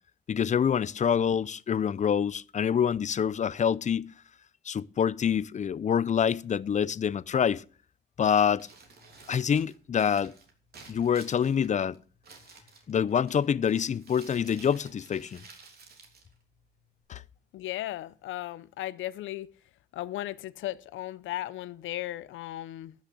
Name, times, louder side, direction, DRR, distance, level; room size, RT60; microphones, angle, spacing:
voice 1, 0.3-4.1 4.7-7.6 8.2-8.7 9.3-10.3 10.9-12.0 12.9-15.4 17.1-17.2, left 8 dB, 35° left, 0.5 m, -26 dB
Crumpling crinkling, 8.5-17.0, right 4 dB, 55° right, 3.4 m, -54 dB
voice 2, 17.5-19.5 19.9-22.9, left 14 dB, 80° left, 0.7 m, -36 dB
12.0 x 6.4 x 7.7 m
cardioid pair, 90°, 20 cm